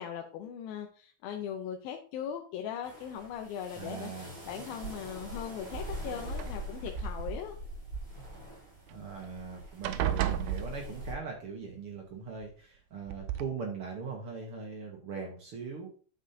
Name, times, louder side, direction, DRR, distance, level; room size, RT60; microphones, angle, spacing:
voice 1, 0.0-4.1 4.5-7.6, left 8 dB, 85° left, 3 dB, 2.6 m, -39 dB
sound 1, 2.8-11.1, right 1 dB, 25° right, 4.6 m, -42 dB
voice 2, 3.7-4.4 8.9-15.9, right 5 dB, 60° right, 0 dB, 1.5 m, -40 dB
sound 2, 4.8-5.4 6.3-7.1 8.9-9.0 9.3-9.5 9.8-11.3 12.4-12.5 13.1-13.4, right 11 dB, 85° right, 2.4 m, -34 dB
10.0 x 7.2 x 2.8 m, 0.42 s
omnidirectional pair, 4.1 m